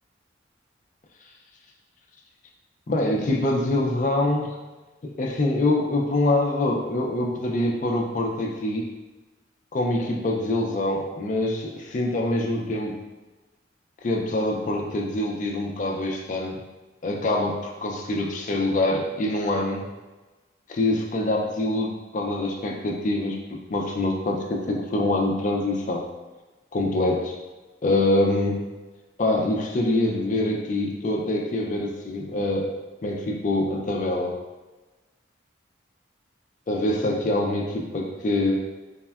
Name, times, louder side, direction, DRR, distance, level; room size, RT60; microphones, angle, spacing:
voice 1, 2.9-4.6 5.0-8.9 9.7-13.0 14.0-16.6 17.0-19.9 20.7-26.0 26.7-27.4 27.8-28.6 29.2-32.7 33.0-34.3 36.7-38.6, left 2 dB, 40° left, 0 dB, 0.3 m, -25 dB
3.4 x 2.1 x 2.3 m, 1.2 s
head